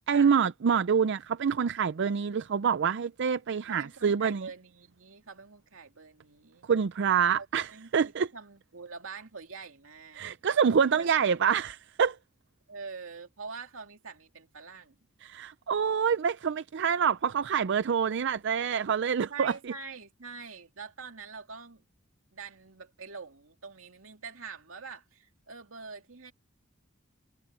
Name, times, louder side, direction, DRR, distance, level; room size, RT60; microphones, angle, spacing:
voice 1, 0.1-4.5 6.7-8.3 10.2-12.2 15.2-19.5, right 7 dB, 60° right, 0.5 m, -26 dB
voice 2, 3.7-6.7 7.4-10.2 10.9-11.3 12.7-15.0 19.3-21.8 22.3-26.3, right 5 dB, 85° right, 2.5 m, -45 dB
head